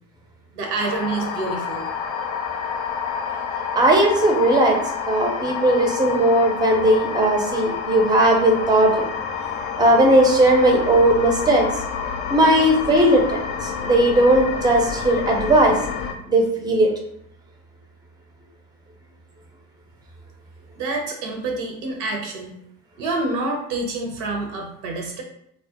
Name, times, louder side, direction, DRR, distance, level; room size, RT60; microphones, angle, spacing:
voice 1, 0.5-1.9 20.8-22.5 23.0-25.2, right 2 dB, 65° right, 2 dB, 0.6 m, -27 dB
sound 1, 0.8-16.1, left 6 dB, 55° left, 0.5 m, -29 dB
voice 2, 3.8-4.8 5.1-9.0 9.8-11.6 12.3-15.8 16.3-16.9, right 1 dB, 10° right, 1 dB, 0.4 m, -17 dB
2.3 x 2.0 x 2.7 m, 0.74 s
hypercardioid pair, 65°, 46 cm